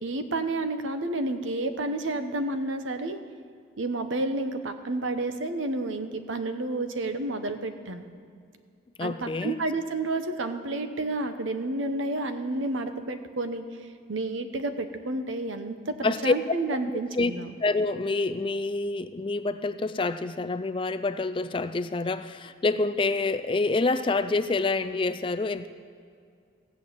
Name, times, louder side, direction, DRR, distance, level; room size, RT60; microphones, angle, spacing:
voice 1, 0.0-3.2 3.8-8.1 9.0-13.6 14.1-17.5, right 2 dB, 80° right, 8 dB, 0.9 m, -30 dB
voice 2, 9.0-9.6 16.0-16.3 17.1-17.3 17.6-25.7, left 3 dB, 25° left, 12 dB, 0.4 m, -27 dB
16.0 x 6.2 x 8.6 m, 2.3 s
head